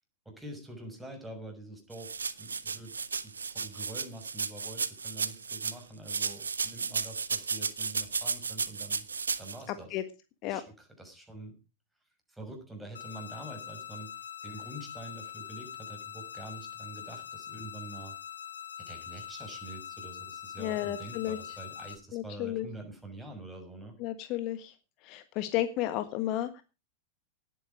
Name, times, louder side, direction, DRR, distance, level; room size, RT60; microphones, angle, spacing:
voice 1, 0.2-9.1 9.4-10.0 10.5-11.6 12.3-18.2 18.8-24.0, right 2 dB, 5° right, 4 dB, 6.1 m, -46 dB
sound 1, 1.9-5.8 6.1-9.6, right 5 dB, 75° right, 1.2 m, -34 dB
sound 2, 12.9-21.9, left 9 dB, 70° left, 4.2 m, -43 dB
voice 2, 20.6-21.4 22.1-22.7 24.0-24.7 25.0-26.6, left 13 dB, 40° left, 10 dB, 1.5 m, -32 dB
18.5 x 9.3 x 4.8 m, 0.31 s
figure-of-eight pair, 90°, 0 cm